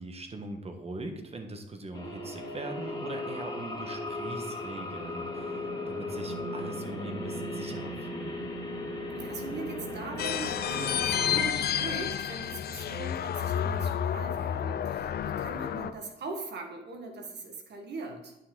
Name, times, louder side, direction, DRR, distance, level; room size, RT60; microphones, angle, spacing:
voice 1, 0.0-8.4, right 2 dB, 30° right, 5 dB, 1.3 m, -41 dB
sound 1, 1.9-11.4, left 1 dB, 20° left, 2.2 m, -36 dB
voice 2, 9.1-18.3, right 3 dB, 60° right, 3 dB, 1.5 m, -40 dB
sound 2, 10.2-15.9, left 9 dB, 55° left, 0.5 m, -30 dB
9.6 x 6.0 x 3.8 m, 0.90 s
cardioid pair, 90°, 20 cm